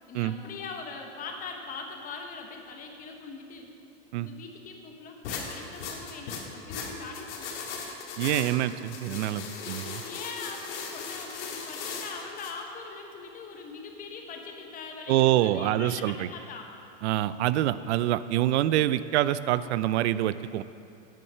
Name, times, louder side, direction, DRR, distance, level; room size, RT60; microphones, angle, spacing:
voice 1, 0.1-3.7 4.2-7.7 10.0-16.7, left 4 dB, 25° left, 2 dB, 1.0 m, -41 dB
sound 1, 5.2-12.5, left 5 dB, 75° left, 1.8 m, -38 dB
voice 2, 8.2-10.0 15.1-16.3 17.0-20.6, right 13 dB, 70° right, 15 dB, 0.5 m, -26 dB
9.4 x 8.9 x 5.6 m, 2.7 s
supercardioid pair, 155°, 35 cm